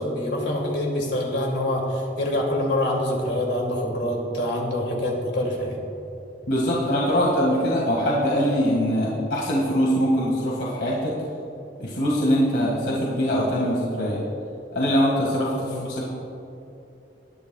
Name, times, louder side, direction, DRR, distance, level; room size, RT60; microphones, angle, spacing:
voice 1, 0.0-5.8 15.5-15.9, left 1 dB, 85° left, -1 dB, 2.4 m, -25 dB
voice 2, 6.5-11.1 11.8-14.2 14.7-16.1, equal, 70° left, -4 dB, 1.9 m, -22 dB
20.0 x 11.0 x 2.3 m, 2.8 s
head